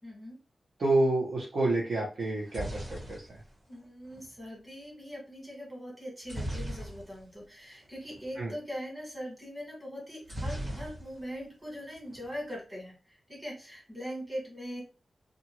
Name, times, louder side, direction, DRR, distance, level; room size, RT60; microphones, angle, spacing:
voice 1, 0.0-0.4 3.7-14.8, equal, 10° right, -3 dB, 1.5 m, -41 dB
voice 2, 0.8-2.8 3.1-3.2 8.4-8.5, right 2 dB, 65° right, -3 dB, 1.0 m, -28 dB
sound 1, 2.2-4.3 6.2-7.4 7.7-8.3 10.2-11.4 11.7-12.3, right 1 dB, 80° right, 1.7 m, -38 dB
2.6 x 2.5 x 2.9 m, 0.34 s
wide cardioid pair, 160°, 0 cm